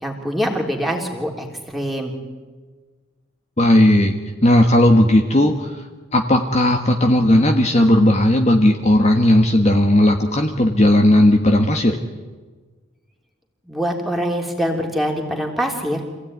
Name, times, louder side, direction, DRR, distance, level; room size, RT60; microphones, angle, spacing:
voice 1, 0.0-2.1 13.7-16.0, equal, ahead, 1 dB, 3.4 m, -24 dB
voice 2, 3.6-4.1 4.4-5.8 6.1-12.0, left 1 dB, 35° left, 3 dB, 1.4 m, -15 dB
27.5 x 16.5 x 9.6 m, 1.3 s
head